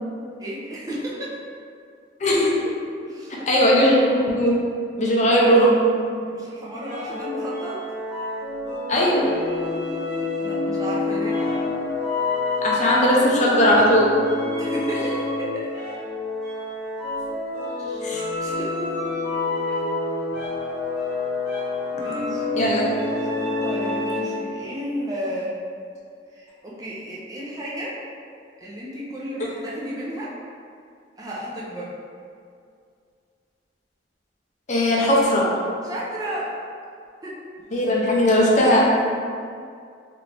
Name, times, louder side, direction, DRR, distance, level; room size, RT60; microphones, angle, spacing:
voice 1, 0.4-1.3 3.1-3.5 6.2-7.8 9.9-10.0 10.4-11.4 14.6-15.7 17.8-18.1 18.4-18.8 19.6-19.8 21.9-23.1 23.4-25.6 26.3-28.0 28.6-30.4 31.2-31.9 35.8-36.6 37.2-37.4, equal, 20° right, -6 dB, 0.4 m, -33 dB
voice 2, 2.2-2.6 3.5-4.7 5.0-5.8 8.9-9.4 12.6-14.1 18.0-18.2 22.6-22.8 34.7-35.5 37.7-38.9, equal, 40° left, -4 dB, 0.5 m, -18 dB
sound 1, 6.8-24.5, left 2 dB, 65° right, 1.0 m, -27 dB
3.0 x 2.5 x 3.2 m, 2.3 s
head